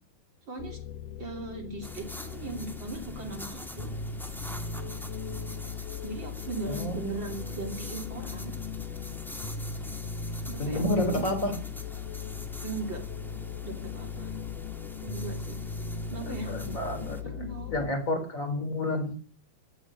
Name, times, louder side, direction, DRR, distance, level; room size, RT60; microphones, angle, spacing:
voice 1, 0.5-0.8 1.2-3.9 6.0-8.5 10.5-11.3 12.6-13.0 13.6-14.3 15.0-15.6 16.1-16.5 17.2-17.8, right 3 dB, 35° right, 4 dB, 2.8 m, -38 dB
sound 1, 0.6-17.9, left 6 dB, 65° left, 2.6 m, -38 dB
sound 2, 1.8-17.2, equal, ahead, 0.4 m, -44 dB
voice 2, 6.7-7.4 10.6-11.6 16.3-19.2, left 1 dB, 20° left, 6 dB, 3.9 m, -30 dB
15.5 x 11.0 x 6.4 m, 0.40 s
omnidirectional pair, 4.5 m